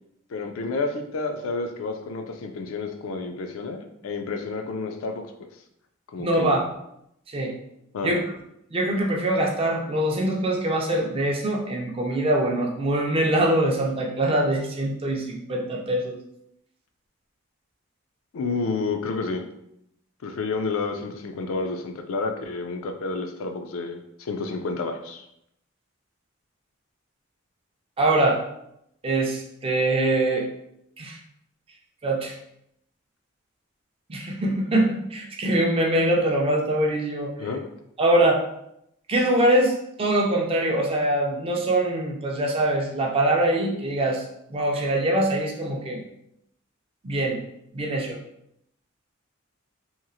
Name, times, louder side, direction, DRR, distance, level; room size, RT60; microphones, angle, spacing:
voice 1, 0.3-5.2 6.1-6.6 7.9-8.2 18.3-19.4 20.2-25.2 37.4-37.6, left 3 dB, 70° left, 5 dB, 0.4 m, -30 dB
voice 2, 6.2-6.7 7.3-7.5 8.0-8.2 8.7-16.2 28.0-28.4 29.0-30.5 31.0-31.2 32.0-32.4 34.1-37.3 38.0-38.4 39.1-44.2 44.5-46.0 47.0-47.4 47.7-48.2, right 1 dB, 25° right, 0 dB, 0.4 m, -23 dB
2.9 x 2.3 x 2.5 m, 0.79 s
head